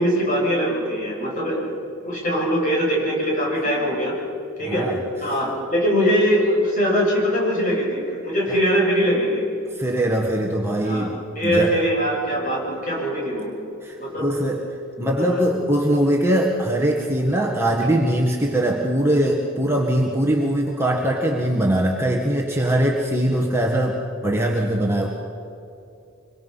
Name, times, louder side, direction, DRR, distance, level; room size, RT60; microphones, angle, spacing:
voice 1, 0.0-1.6 2.0-4.1 4.6-4.9 5.2-9.4 10.8-11.1 11.4-13.5 14.0-14.3 15.2-15.4, equal, 35° left, -3 dB, 7.4 m, -22 dB
voice 2, 3.7-4.0 4.6-5.0 8.5-8.6 9.7-11.8 13.8-14.6 15.0-25.1, right 1 dB, 10° right, -1 dB, 1.6 m, -22 dB
26.0 x 23.0 x 5.8 m, 2.7 s
head